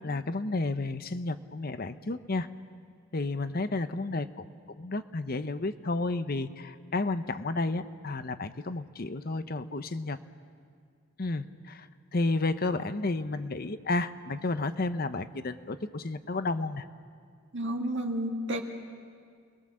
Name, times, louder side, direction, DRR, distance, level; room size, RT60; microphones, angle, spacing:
voice 1, 0.0-2.5 3.1-4.3 4.8-10.2 11.2-16.9, left 2 dB, 45° left, 11 dB, 0.8 m, -31 dB
voice 2, 17.5-18.6, right 1 dB, 60° right, 3 dB, 2.1 m, -31 dB
27.0 x 20.5 x 7.5 m, 2.1 s
head